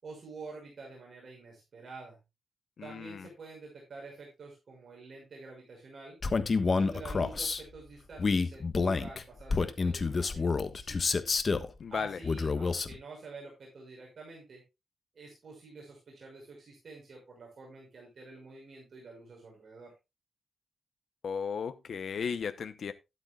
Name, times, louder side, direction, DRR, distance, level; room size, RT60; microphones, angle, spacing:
voice 1, 0.0-2.2 2.8-6.2 6.7-11.2 11.9-14.6 15.1-19.9, right 3 dB, 55° right, 6.1 m, -48 dB
voice 2, 2.8-3.3 11.8-12.2 21.2-22.9, left 6 dB, 65° left, 0.8 m, -35 dB
Male speech man speaking, 6.2-7.6 8.2-11.7 12.2-12.9, left 4 dB, 40° left, 1.2 m, -28 dB
12.5 x 12.0 x 2.4 m
wide cardioid pair, 105°, 0 cm